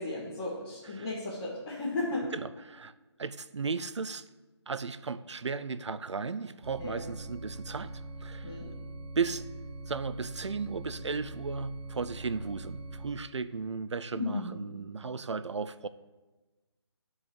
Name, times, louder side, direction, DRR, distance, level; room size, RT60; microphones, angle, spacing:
voice 1, 0.0-2.3 6.8-7.1 8.4-8.7 14.1-14.8, left 2 dB, 20° left, -8 dB, 1.5 m, -35 dB
voice 2, 2.3-2.9 3.2-4.3 4.7-7.9 8.2-8.6 9.2-9.5 9.9-15.9, right 5 dB, 75° right, 14 dB, 0.6 m, -35 dB
sound 1, 6.6-13.1, right 2 dB, 55° right, 2.6 m, -43 dB
9.8 x 4.9 x 7.6 m, 1.2 s
figure-of-eight pair, 165°, 15 cm